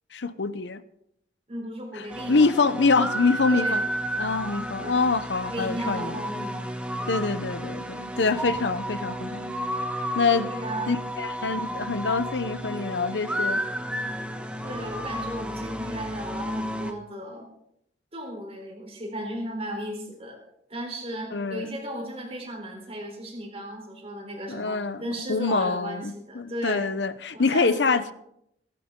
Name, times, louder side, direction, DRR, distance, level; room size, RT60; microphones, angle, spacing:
voice 1, 0.1-0.8 2.3-3.8 4.1-6.2 7.1-9.5 10.1-10.5 10.9-13.7 21.3-21.8 24.5-25.0 25.3-28.1, left 4 dB, 85° left, 13 dB, 0.8 m, -25 dB
voice 2, 1.5-2.5 3.5-3.8 4.2-5.0 5.4-6.7 7.0-7.1 10.4-11.0 14.6-17.5 18.1-20.4 20.7-26.9 27.3-28.0, equal, 35° right, 1 dB, 3.9 m, -36 dB
sound 1, 2.1-16.9, right 1 dB, 5° right, 1.2 m, -32 dB
21.5 x 11.0 x 3.8 m, 0.76 s
head